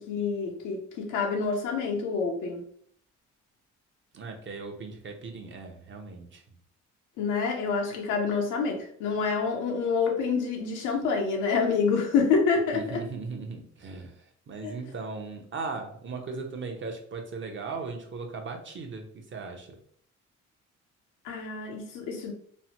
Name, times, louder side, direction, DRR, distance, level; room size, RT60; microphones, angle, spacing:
voice 1, 0.0-2.6 7.2-13.0 14.6-14.7 21.2-22.3, left 5 dB, 85° left, 1 dB, 0.6 m, -27 dB
voice 2, 4.1-6.4 12.7-19.8, right 4 dB, 40° right, 3 dB, 0.7 m, -38 dB
3.1 x 2.0 x 2.8 m, 0.63 s
cardioid pair, 90°, 30 cm